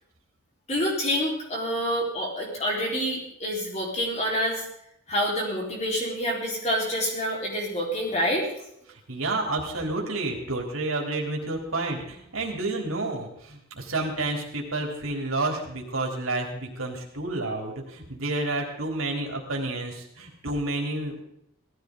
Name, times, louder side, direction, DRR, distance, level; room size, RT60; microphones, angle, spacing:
voice 1, 0.7-4.6 5.1-8.5, equal, 30° left, -2 dB, 4.5 m, -27 dB
voice 2, 8.9-21.2, right 2 dB, 80° right, 1 dB, 3.6 m, -30 dB
18.0 x 14.5 x 4.0 m, 0.73 s
head